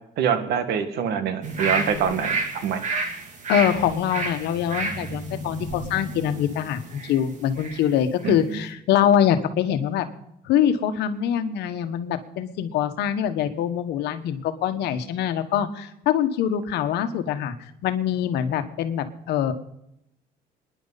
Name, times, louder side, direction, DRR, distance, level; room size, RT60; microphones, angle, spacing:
voice 1, 0.2-2.8 8.2-8.6, right 7 dB, 75° right, 8 dB, 1.8 m, -25 dB
sound 1, 1.4-7.9 8.2-8.3, right 3 dB, 45° right, 2.7 m, -31 dB
voice 2, 3.5-10.0 10.4-17.5 17.8-19.5, left 9 dB, 80° left, 9 dB, 1.3 m, -24 dB
26.5 x 10.5 x 4.1 m, 0.80 s
cardioid pair, 110°, 17 cm